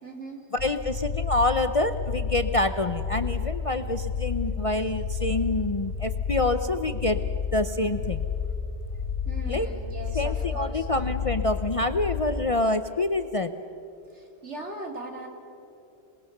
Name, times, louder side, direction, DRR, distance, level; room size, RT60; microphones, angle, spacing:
voice 1, 0.0-0.4 9.2-10.9 14.1-15.3, right 2 dB, 70° right, 1 dB, 3.2 m, -39 dB
voice 2, 0.5-7.2 7.5-8.2 9.5-9.7 10.1-13.5, left 2 dB, 35° left, 9 dB, 0.6 m, -26 dB
sound 1, 0.6-12.2, left 6 dB, 60° left, 1.5 m, -31 dB
27.5 x 20.5 x 6.7 m, 2.8 s
omnidirectional pair, 1.2 m